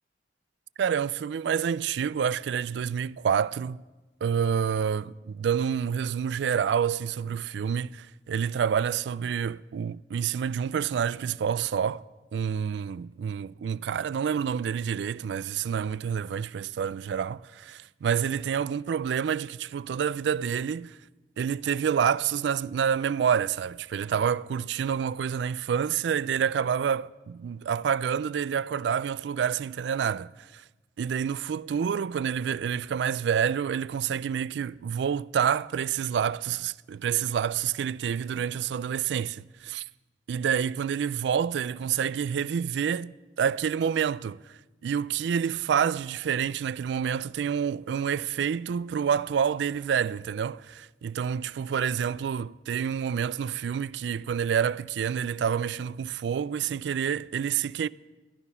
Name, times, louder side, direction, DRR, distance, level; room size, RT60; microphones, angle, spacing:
voice 1, 0.8-3.8 4.2-12.0 12.3-21.0 21.4-30.6 31.0-39.9 40.3-57.9, right 7 dB, 80° right, 0.3 m, -28 dB
13.5 x 12.0 x 5.5 m
head